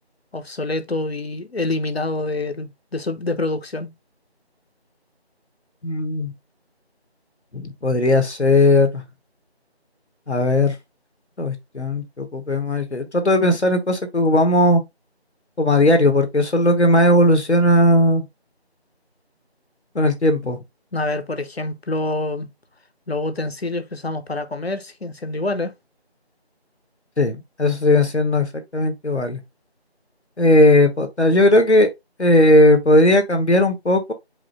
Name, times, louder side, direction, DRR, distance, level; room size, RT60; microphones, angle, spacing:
voice 1, 0.3-3.9 20.9-22.5 23.1-25.7, left 2 dB, 70° left, 0.7 m, -26 dB
voice 2, 5.8-6.3 7.5-9.0 10.3-10.7 11.4-14.8 15.6-18.2 19.9-20.6 27.2-29.4 30.4-31.9 32.2-34.1, left 1 dB, 85° left, 1.1 m, -17 dB
4.8 x 2.0 x 4.3 m
figure-of-eight pair, 180°, 33 cm